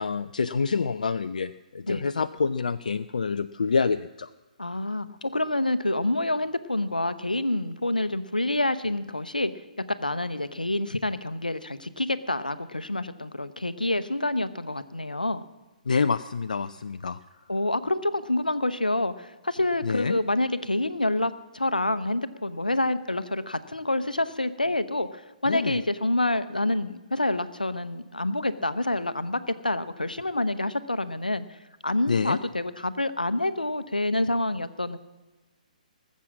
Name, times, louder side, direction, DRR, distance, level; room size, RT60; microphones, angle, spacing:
voice 1, 0.0-4.3 15.9-17.2 19.8-20.2 25.5-25.8 32.1-32.4, left 5 dB, 65° left, 11 dB, 0.4 m, -27 dB
voice 2, 4.6-9.5 9.9-15.4 17.5-31.4 31.8-35.0, left 2 dB, 85° left, 13 dB, 0.8 m, -27 dB
19.0 x 7.4 x 7.3 m, 1.1 s
figure-of-eight pair, 130°, 4 cm